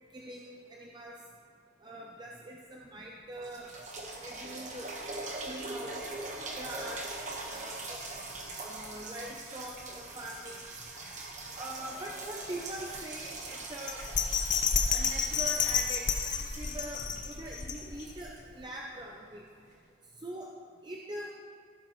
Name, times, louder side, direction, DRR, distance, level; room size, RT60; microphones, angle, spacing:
voice 1, 0.1-1.2 1.8-3.7 4.2-4.9 5.4-6.0 6.6-7.0 7.4-8.0 8.5-10.7 11.3-14.0 14.9-19.4 20.2-20.5 20.8-21.3, right 1 dB, 20° right, -1 dB, 0.5 m, -43 dB
sound 1, 2.8-2.9 3.3-19.1 19.7-19.8, right 2 dB, 35° right, 1.2 m, -42 dB
Bell, 13.9-18.2 18.6-18.7, left 6 dB, 40° left, 0.6 m, -30 dB
15.5 x 7.3 x 3.1 m, 2.2 s
head